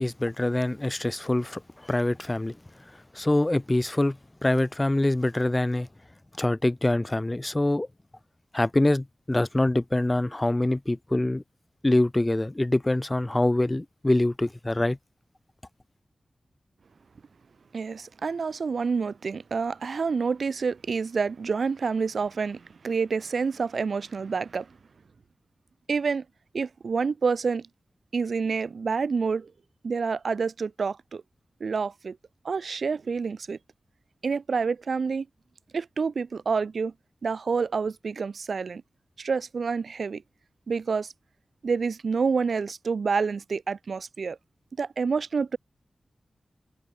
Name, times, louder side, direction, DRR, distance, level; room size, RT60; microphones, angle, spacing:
voice 1, 0.0-2.6 3.1-5.9 6.4-7.9 8.5-11.4 11.8-15.0, left 1 dB, 20° left, 2.7 m, -25 dB
voice 2, 17.7-24.8 25.9-26.2 26.5-27.7 28.1-29.5 29.8-31.2 31.6-32.2 32.5-33.6 34.2-35.3 35.7-36.9 37.2-38.8 39.2-40.2 40.7-41.1 41.6-44.4 44.8-45.6, right 5 dB, 70° right, 5.0 m, -28 dB
wide cardioid pair, 90°, 0 cm